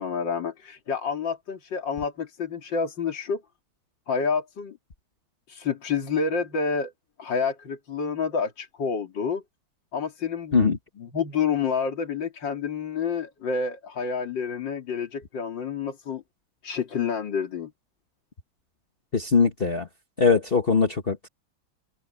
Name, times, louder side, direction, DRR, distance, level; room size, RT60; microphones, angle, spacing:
voice 1, 0.0-3.4 4.1-4.8 5.5-6.9 7.2-9.4 9.9-10.6 11.0-16.2 16.6-17.7, left 6 dB, 90° left, 3.1 m, -28 dB
voice 2, 19.1-19.9 20.2-21.3, left 5 dB, 35° left, 1.5 m, -21 dB
omnidirectional pair, 1.9 m